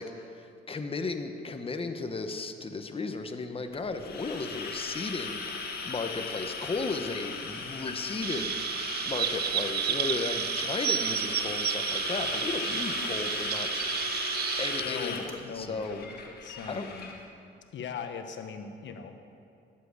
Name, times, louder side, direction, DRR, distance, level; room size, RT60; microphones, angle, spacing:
voice 1, 0.0-14.2 14.6-16.1 16.7-16.9, left 3 dB, 30° left, 7 dB, 1.0 m, -35 dB
sound 1, 3.7-17.2, left 4 dB, 50° left, 1.9 m, -36 dB
Chirp tweet, 8.2-14.8, right 11 dB, 55° right, 0.4 m, -31 dB
voice 2, 14.8-17.1 17.7-19.2, left 6 dB, 70° left, 6 dB, 1.2 m, -40 dB
11.5 x 7.7 x 8.3 m, 2.5 s
cardioid pair, 90°, 20 cm